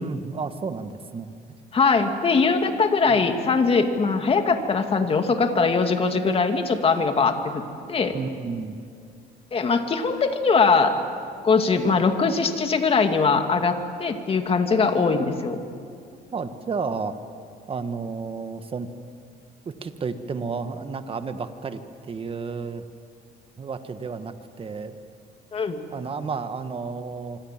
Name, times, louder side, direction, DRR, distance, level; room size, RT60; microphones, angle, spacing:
voice 1, 0.0-1.3 3.1-3.2 8.0-8.8 16.3-17.1 17.7-18.9 19.6-21.8 22.1-22.8 23.6-25.0 25.9-27.4, right 5 dB, 35° right, 9 dB, 1.6 m, -32 dB
voice 2, 1.7-7.6 7.9-8.2 9.5-11.0 11.4-15.6 25.5-25.8, left 4 dB, 35° left, 6 dB, 2.4 m, -21 dB
26.0 x 25.5 x 7.5 m, 2.3 s
cardioid pair, 110°, 17 cm